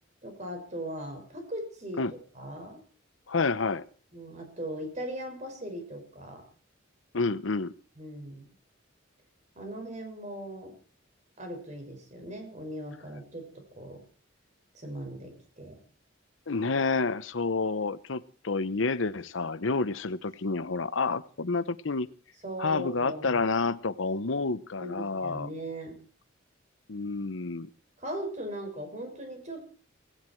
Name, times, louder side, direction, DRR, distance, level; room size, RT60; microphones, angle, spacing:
voice 1, 0.2-2.8 4.1-6.4 8.0-8.4 9.5-10.7 11.4-14.0 14.7-15.8 22.4-23.4 24.8-26.0 28.0-29.7, right 1 dB, 35° right, 4 dB, 5.9 m, -39 dB
voice 2, 3.3-3.8 7.1-7.7 16.5-22.1 22.6-25.5 26.9-27.7, left 4 dB, 75° left, 15 dB, 0.8 m, -29 dB
17.5 x 17.5 x 4.6 m, 0.40 s
head